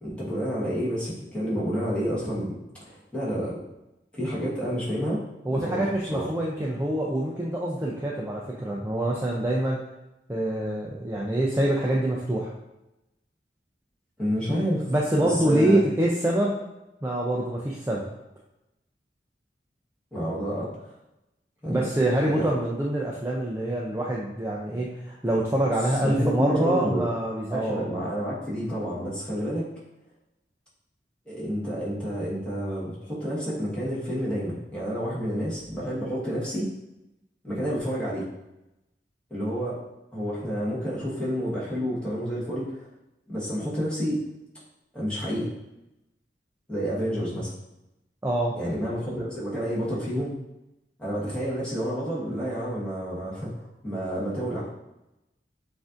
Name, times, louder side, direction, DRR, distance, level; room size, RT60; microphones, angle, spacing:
voice 1, 0.0-3.6 4.1-5.2 5.5-6.3 14.2-14.9 15.2-15.8 20.1-21.0 21.6-21.9 22.3-22.5 25.7-25.8 26.0-27.1 27.5-29.7 31.3-36.7 37.4-38.2 39.3-39.8 40.1-42.9 43.3-44.2 44.9-45.5 46.7-47.5 48.5-50.3 51.0-54.7, equal, 5° left, -8 dB, 1.1 m, -29 dB
voice 2, 5.5-9.8 10.3-12.5 14.9-16.6 17.0-18.0 21.7-27.8 48.2-48.6, right 1 dB, 15° right, -3 dB, 0.3 m, -25 dB
7.2 x 2.6 x 2.4 m, 0.94 s
head